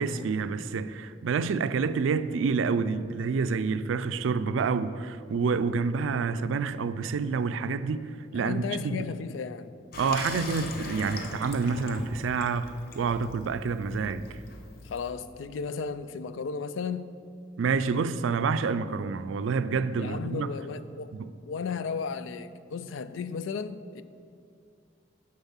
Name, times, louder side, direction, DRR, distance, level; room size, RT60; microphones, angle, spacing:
voice 1, 0.0-8.0 8.3-9.1 10.0-14.3 17.6-20.5, right 5 dB, 90° right, 0.4 m, -28 dB
voice 2, 8.3-9.7 14.8-17.1 20.0-21.1 21.5-24.0, left 5 dB, 85° left, 0.4 m, -34 dB
Water tap faucet / Sink (filling or washing), 9.9-15.1, left 2 dB, 55° left, 0.8 m, -40 dB
7.0 x 6.6 x 5.6 m
head